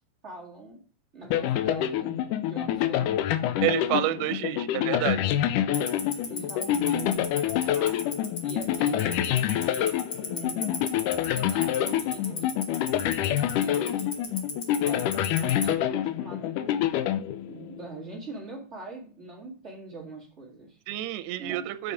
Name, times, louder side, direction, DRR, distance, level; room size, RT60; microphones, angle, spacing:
voice 1, 0.2-0.8 1.1-3.8 4.1-4.3 6.3-10.8 11.3-12.5 13.2-14.1 14.7-16.8 17.5-20.8 21.4-21.9, right 2 dB, 30° right, -3 dB, 1.2 m, -42 dB
sound 1, 1.3-17.9, left 11 dB, 85° left, 1.8 m, -27 dB
voice 2, 3.6-5.2 20.9-21.9, right 15 dB, 90° right, 11 dB, 2.7 m, -29 dB
Tick-tock, 5.7-15.6, left 7 dB, 50° left, 1.9 m, -31 dB
7.6 x 7.0 x 4.8 m, 0.41 s
omnidirectional pair, 4.4 m